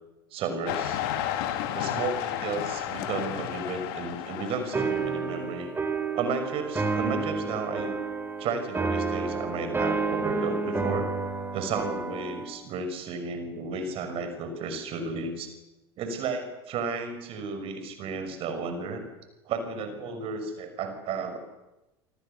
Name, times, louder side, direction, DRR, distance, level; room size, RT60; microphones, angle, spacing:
voice 1, 0.3-1.0 1.7-5.7 6.1-7.9 8.4-11.1 11.5-15.5 16.0-19.0 19.4-21.4, right 4 dB, 40° right, 8 dB, 6.1 m, -33 dB
sound 1, 0.7-5.0, left 11 dB, 55° left, 3.1 m, -32 dB
sound 2, 4.7-12.5, right 4 dB, 15° right, 4.9 m, -30 dB
29.5 x 25.5 x 7.0 m, 0.99 s
figure-of-eight pair, 75°, 14 cm